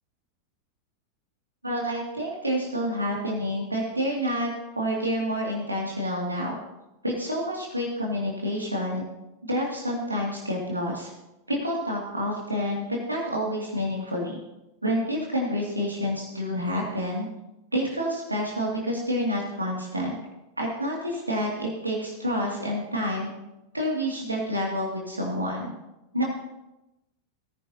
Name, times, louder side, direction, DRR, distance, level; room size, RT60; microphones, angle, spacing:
voice 1, 1.6-6.5 7.0-9.0 9.4-11.1 11.5-14.4 14.8-17.3 17.7-20.2 20.6-23.3 23.7-25.7 26.1-26.2, equal, 85° right, -2 dB, 2.4 m, -28 dB
18.5 x 10.0 x 2.9 m, 0.95 s
figure-of-eight pair, 90°, 0 cm